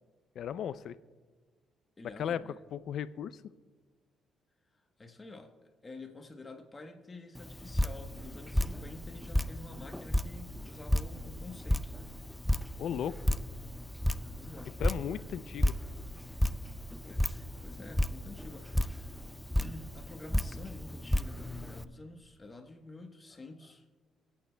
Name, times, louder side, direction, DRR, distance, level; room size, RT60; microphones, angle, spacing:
voice 1, 0.4-1.0 2.2-2.4 2.7-3.4 12.8-13.2 14.8-15.8, left 9 dB, 70° left, 15 dB, 0.4 m, -35 dB
voice 2, 2.0-2.6 5.0-5.5 5.8-11.9 14.4-14.8 17.0-19.2 19.6-23.8, left 2 dB, 25° left, 5 dB, 1.1 m, -49 dB
Drip, 7.3-21.8, left 1 dB, 5° left, 0.4 m, -33 dB
25.0 x 8.7 x 2.3 m, 1.4 s
cardioid pair, 90°, 0 cm